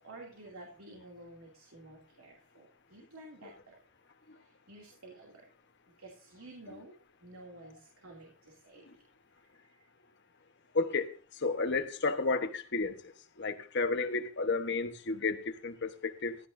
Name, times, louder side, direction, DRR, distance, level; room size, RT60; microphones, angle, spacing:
voice 1, 0.0-3.8 4.4-5.5 6.0-6.9 7.2-9.0, right 2 dB, 75° right, 2.7 m, -52 dB
voice 2, 10.7-11.1 11.4-13.1 13.4-16.4, left 3 dB, 55° left, 1.2 m, -32 dB
15.5 x 12.5 x 2.7 m
head